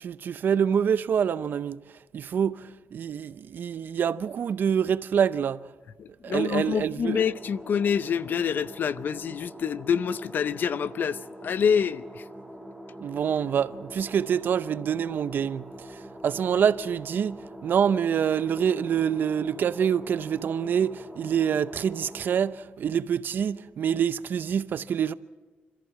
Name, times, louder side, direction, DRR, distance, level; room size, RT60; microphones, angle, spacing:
voice 1, 0.0-1.8 2.1-5.6 6.2-7.2 13.0-15.6 16.2-17.4 17.6-25.1, right 8 dB, 60° right, 0.6 m, -26 dB
voice 2, 6.0-12.2, left 7 dB, 55° left, 0.6 m, -27 dB
sound 1, 7.0-22.4, right 1 dB, 5° right, 1.8 m, -44 dB
26.0 x 14.0 x 7.5 m
cardioid pair, 115°, 4 cm